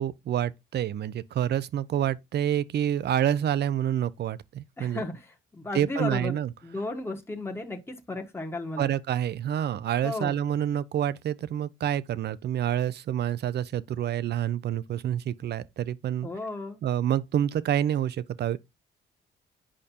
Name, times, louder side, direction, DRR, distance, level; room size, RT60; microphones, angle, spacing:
voice 1, 0.0-5.0 5.7-6.5 8.8-16.3 16.8-18.6, right 10 dB, 55° right, 0.6 m, -28 dB
voice 2, 4.8-8.9 10.0-10.4 16.2-16.8, left 2 dB, 10° left, 1.3 m, -34 dB
8.7 x 5.1 x 2.8 m
cardioid pair, 90°, 20 cm